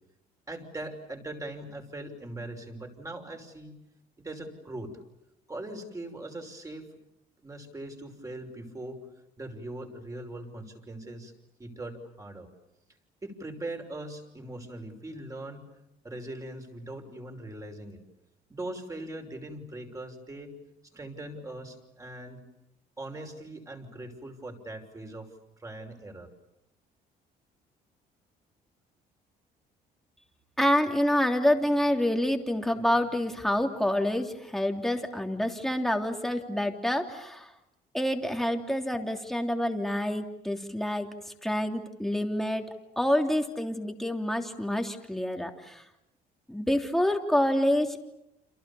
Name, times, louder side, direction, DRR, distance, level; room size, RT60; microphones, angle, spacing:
voice 1, 0.5-3.8 4.2-4.9 5.5-6.9 7.4-9.1 9.4-11.3 11.6-12.5 13.2-15.7 16.0-18.0 18.5-20.6 20.9-22.4 23.0-25.3 25.6-26.3, right 1 dB, 20° right, 4 dB, 5.8 m, -40 dB
voice 2, 30.6-37.5 37.9-41.1 41.4-42.6 43.0-45.8 46.5-48.0, left 1 dB, ahead, 3 dB, 3.2 m, -27 dB
30.0 x 28.0 x 7.1 m, 0.88 s
cardioid pair, 110°, 17 cm